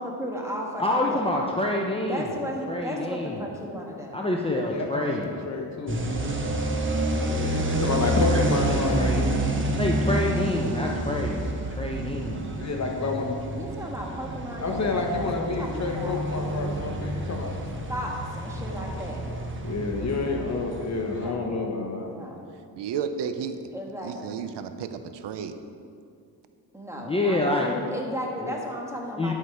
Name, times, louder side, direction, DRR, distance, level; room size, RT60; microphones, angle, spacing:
voice 1, 0.0-1.2 2.1-4.2 13.5-16.2 17.9-19.2 21.2-21.6 22.0-22.4 23.7-24.4 26.7-29.3, equal, 5° right, -1 dB, 1.5 m, -35 dB
voice 2, 0.8-2.3 2.7-3.5 4.1-5.4 7.2-9.4 9.8-12.3 27.0-27.8 28.4-28.5 29.2-29.3, left 2 dB, 15° left, -1 dB, 0.7 m, -28 dB
voice 3, 4.7-6.0 7.6-9.3 9.6-9.7 12.6-13.3 14.6-17.5 18.9-19.4 19.6-22.1, left 3 dB, 40° left, 2 dB, 1.3 m, -29 dB
sound 1, 5.9-21.3, right 1 dB, 30° right, 1.1 m, -29 dB
voice 4, 22.8-23.6 24.0-25.6, right 7 dB, 85° right, 9 dB, 0.6 m, -32 dB
11.0 x 6.0 x 4.7 m, 2.4 s
cardioid pair, 100°, 41 cm